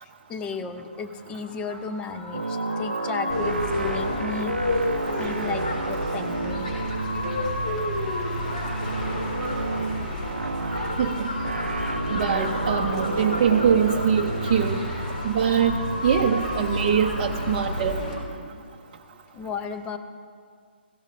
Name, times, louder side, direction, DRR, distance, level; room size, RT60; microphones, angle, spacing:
voice 1, 0.0-4.6 5.2-6.7 19.3-20.0, left 5 dB, 15° left, 8 dB, 0.7 m, -34 dB
sound 1, 1.2-18.2, left 2 dB, 80° left, 3.1 m, -38 dB
sound 2, 2.3-18.9, right 3 dB, 75° right, 0.5 m, -32 dB
sound 3, 3.3-18.2, left 1 dB, 45° left, 3.7 m, -31 dB
voice 2, 12.1-14.8 15.2-15.8 16.0-18.0, right 7 dB, 35° right, 1 dB, 0.7 m, -23 dB
20.5 x 16.5 x 2.5 m, 2.1 s
figure-of-eight pair, 135°, 6 cm